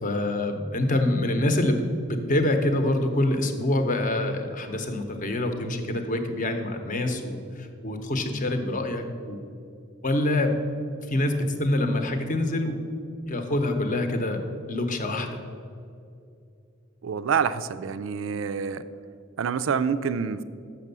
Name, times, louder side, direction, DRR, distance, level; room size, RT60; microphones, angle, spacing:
voice 1, 0.0-1.8 2.1-9.4 10.0-10.6 11.1-12.8 13.3-14.4 14.7-15.3, left 1 dB, 40° left, 6 dB, 0.8 m, -26 dB
voice 2, 17.0-18.8 19.4-20.4, right 6 dB, 70° right, 12 dB, 0.4 m, -27 dB
6.9 x 6.0 x 6.7 m, 2.5 s
head